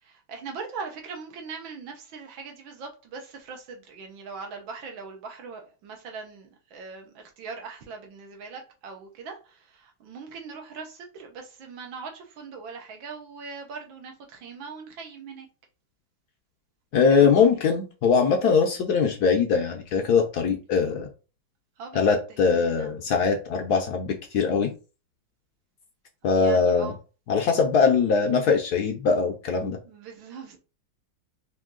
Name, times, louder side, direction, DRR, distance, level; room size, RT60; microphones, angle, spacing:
voice 1, 0.0-15.5 16.9-17.5 21.8-23.2 26.4-27.0 29.9-30.6, right 5 dB, 80° right, 1.8 m, -41 dB
voice 2, 16.9-21.1 21.9-24.7 26.2-26.9 27.3-29.8, left 5 dB, 70° left, 1.0 m, -22 dB
4.4 x 2.7 x 3.7 m
omnidirectional pair, 2.1 m